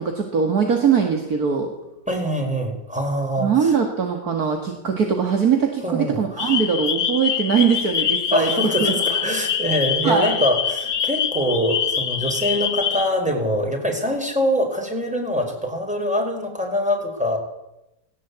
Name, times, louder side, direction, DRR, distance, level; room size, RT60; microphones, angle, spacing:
voice 1, 0.0-1.7 3.4-9.0 10.0-10.3, right 6 dB, 60° right, 3 dB, 2.5 m, -21 dB
voice 2, 2.1-3.7 5.8-6.5 8.3-17.4, equal, 5° right, 2 dB, 4.6 m, -24 dB
sound 1, 6.4-13.1, left 8 dB, 75° left, 1.9 m, -24 dB
18.5 x 18.5 x 8.3 m, 0.92 s
omnidirectional pair, 1.9 m